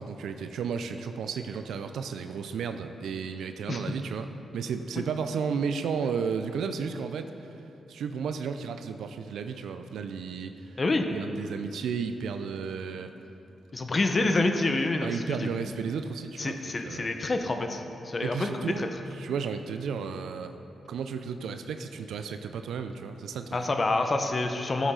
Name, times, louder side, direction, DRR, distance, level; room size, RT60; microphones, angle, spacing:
voice 1, 0.0-7.3 7.9-10.8 11.1-13.1 15.0-17.2 18.2-20.5 20.9-23.6, right 6 dB, 85° right, 8 dB, 0.4 m, -33 dB
voice 2, 10.8-11.1 13.7-15.5 16.4-18.5 18.8-18.9 23.5-24.9, left 2 dB, 45° left, 5 dB, 0.9 m, -27 dB
12.5 x 7.2 x 3.8 m, 2.8 s
supercardioid pair, 55°, 0 cm